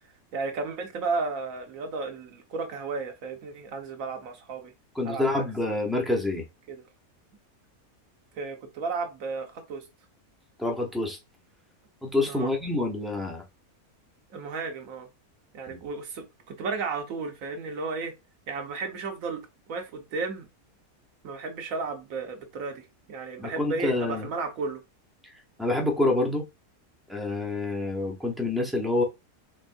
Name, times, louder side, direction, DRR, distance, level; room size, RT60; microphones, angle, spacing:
voice 1, 0.3-4.7 5.0-5.5 6.7-6.8 8.3-9.8 12.3-12.5 14.3-15.1 15.5-18.1 18.5-19.4 19.7-20.5 21.2-24.8, right 4 dB, 70° right, 1.2 m, -33 dB
voice 2, 4.9-6.4 10.6-11.2 12.0-13.4 15.7-15.8 23.4-24.3 25.2-25.3 25.6-26.5 27.1-29.0, left 2 dB, ahead, 0.6 m, -27 dB
4.3 x 3.0 x 2.6 m
omnidirectional pair, 1.5 m